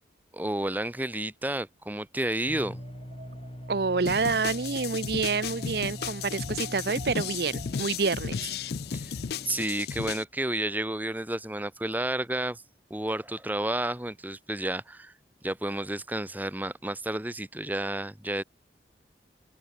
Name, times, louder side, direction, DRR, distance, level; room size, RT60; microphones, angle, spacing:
voice 1, 0.3-2.8 8.9-9.1 9.5-12.6 12.9-15.1 15.4-18.4, right 1 dB, 10° right, 1.0 m, -31 dB
sound 1, 2.5-9.6, equal, 30° left, 4.4 m, -43 dB
Wind, 2.6-8.6, right 2 dB, 40° right, 2.7 m, -51 dB
voice 2, 3.7-8.5, right 4 dB, 60° right, 0.7 m, -28 dB
sound 2, 4.1-10.2, left 6 dB, 60° left, 0.4 m, -35 dB
open air
head